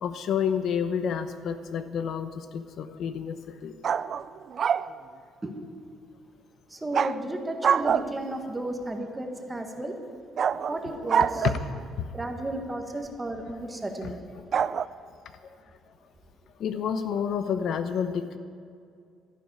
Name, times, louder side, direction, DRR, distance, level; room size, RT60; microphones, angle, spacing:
voice 1, 0.0-3.7 11.4-11.6 12.0-12.1 14.0-14.1 14.5-14.6 16.6-18.4, left 7 dB, 60° left, 9 dB, 0.8 m, -29 dB
sound 1, 3.8-4.9 6.9-7.2 7.6-8.4 10.4-11.8 14.5-14.9, right 7 dB, 40° right, 0.3 m, -26 dB
voice 2, 6.7-10.0 10.7-11.4 12.1-14.2, right 1 dB, 10° right, 4 dB, 1.5 m, -33 dB
12.5 x 11.5 x 9.5 m, 2.3 s
cardioid pair, 150°, 0 cm